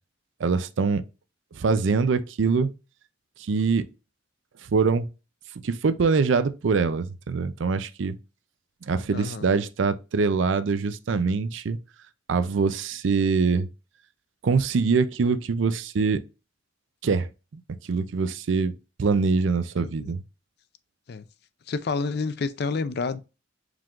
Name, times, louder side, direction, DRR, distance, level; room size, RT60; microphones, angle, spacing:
voice 1, 0.4-1.0 1.5-2.7 3.4-3.9 4.7-5.1 5.6-8.1 8.9-11.8 12.3-13.7 14.4-16.2 17.0-17.3 17.9-18.7 19.0-20.2, right 4 dB, 70° right, 0.4 m, -23 dB
voice 2, 9.1-9.5 19.8-20.1 21.1-21.2 21.7-23.2, left 4 dB, 55° left, 0.4 m, -29 dB
4.8 x 3.7 x 2.4 m
head